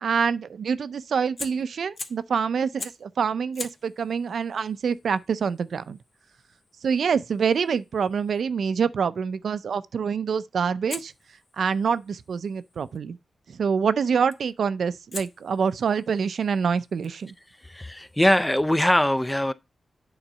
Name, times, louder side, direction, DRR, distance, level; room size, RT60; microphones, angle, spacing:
voice 1, 0.0-6.0 6.8-11.1 11.6-13.2 13.5-17.3, right 6 dB, 75° right, 0.5 m, -26 dB
Fire, 1.4-2.3 2.8-3.1 3.5-8.5 10.9-13.0 14.3-14.6 15.1-18.5, left 3 dB, 45° left, 1.1 m, -44 dB
voice 2, 17.6-19.5, left 1 dB, 10° left, 0.5 m, -22 dB
8.9 x 3.9 x 5.4 m
wide cardioid pair, 105°, 0 cm